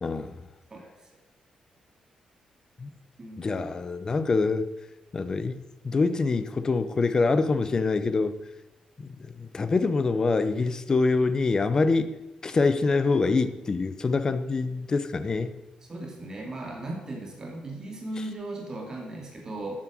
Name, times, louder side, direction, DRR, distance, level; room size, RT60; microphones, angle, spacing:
voice 1, 0.0-0.4 2.8-2.9 3.4-4.7 5.1-8.3 9.0-12.1 12.4-15.6, left 3 dB, 30° left, 12 dB, 0.9 m, -25 dB
voice 2, 3.2-3.7 15.9-19.8, right 2 dB, 25° right, 0 dB, 2.5 m, -37 dB
12.5 x 8.7 x 7.6 m, 1.0 s
wide cardioid pair, 150°, 2 cm